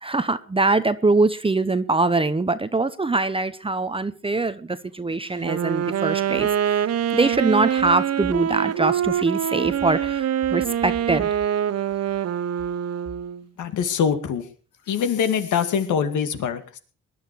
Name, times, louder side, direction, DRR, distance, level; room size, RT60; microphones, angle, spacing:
voice 1, 0.0-6.8 7.1-11.3, right 3 dB, 20° right, 0.9 m, -23 dB
Wind instrument woodwind instrument, 5.3-13.4, right 9 dB, 55° right, 1.0 m, -24 dB
voice 2, 13.6-14.5 14.9-16.8, left 7 dB, 80° left, 2.3 m, -23 dB
19.5 x 11.5 x 4.7 m
cardioid pair, 90°, 30 cm